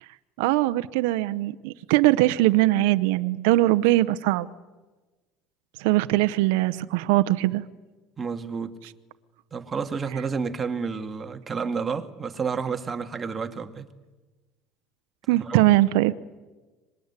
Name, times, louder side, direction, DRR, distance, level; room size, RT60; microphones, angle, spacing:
voice 1, 0.4-4.5 5.8-7.6 15.3-16.1, right 17 dB, 85° right, 0.8 m, -21 dB
voice 2, 8.2-8.7 9.5-13.9 15.3-15.7, right 5 dB, 25° right, 2.1 m, -30 dB
24.5 x 21.0 x 9.7 m
supercardioid pair, 105°, 0 cm